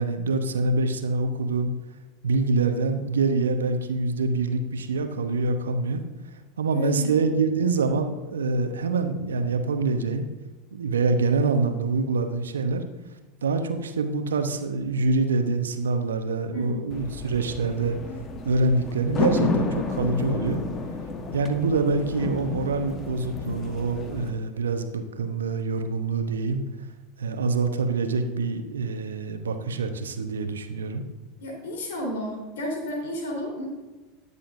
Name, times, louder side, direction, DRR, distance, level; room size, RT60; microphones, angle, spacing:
voice 1, 0.0-1.7 2.2-6.0 6.6-10.3 10.7-12.8 13.4-18.0 18.4-20.6 21.3-26.6 27.2-31.0, right 3 dB, 80° right, 7 dB, 1.0 m, -25 dB
voice 2, 6.7-7.1 16.5-16.9 31.4-33.7, equal, 70° left, -1 dB, 3.8 m, -32 dB
sound 1, 16.9-24.3, left 4 dB, 35° left, 1.3 m, -31 dB
20.5 x 6.9 x 2.6 m, 1.2 s
figure-of-eight pair, 80°, 0 cm